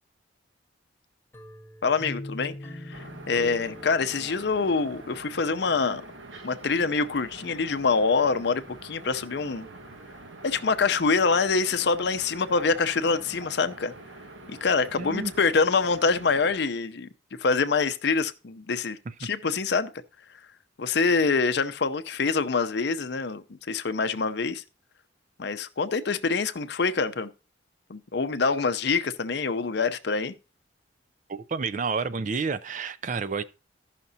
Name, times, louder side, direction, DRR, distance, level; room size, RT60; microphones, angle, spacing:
sound 1, 1.3-6.2, left 1 dB, 10° left, 0.9 m, -43 dB
voice 1, 1.8-6.0 6.4-9.7 10.4-13.9 14.5-17.1 17.4-19.9 20.8-24.6 25.4-27.3 27.9-30.3, left 4 dB, 60° left, 0.6 m, -25 dB
sound 2, 2.9-16.5, right 2 dB, 80° right, 1.2 m, -45 dB
voice 2, 15.0-15.3 19.2-19.3 31.3-33.4, right 4 dB, 40° right, 0.4 m, -30 dB
15.5 x 5.8 x 2.7 m
head